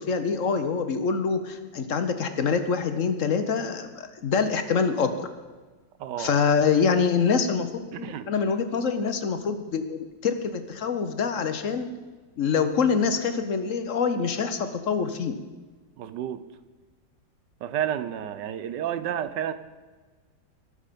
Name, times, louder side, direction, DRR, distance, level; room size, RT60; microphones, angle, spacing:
voice 1, 0.1-5.3 6.2-11.9 12.4-15.3, left 5 dB, 55° left, 9 dB, 1.1 m, -25 dB
voice 2, 6.0-6.3 7.9-8.3 16.0-16.4 17.6-19.5, right 10 dB, 85° right, 12 dB, 1.4 m, -30 dB
19.0 x 6.6 x 5.2 m, 1.3 s
omnidirectional pair, 1.8 m